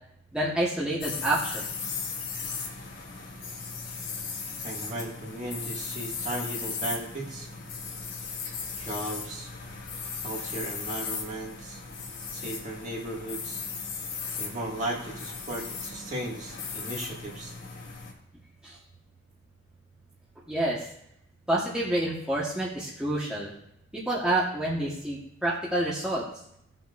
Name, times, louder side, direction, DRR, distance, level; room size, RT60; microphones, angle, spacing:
voice 1, 0.3-1.6 18.6-18.8 20.5-20.9 21.5-23.5 23.9-26.2, right 1 dB, 5° right, -7 dB, 1.3 m, -28 dB
sound 1, 1.0-18.1, left 5 dB, 70° left, 2.6 m, -37 dB
voice 2, 4.6-7.5 8.8-9.5 10.2-11.8 12.3-13.6 14.4-17.6, right 1 dB, 35° right, -2 dB, 2.1 m, -36 dB
17.5 x 6.0 x 2.6 m, 0.74 s
head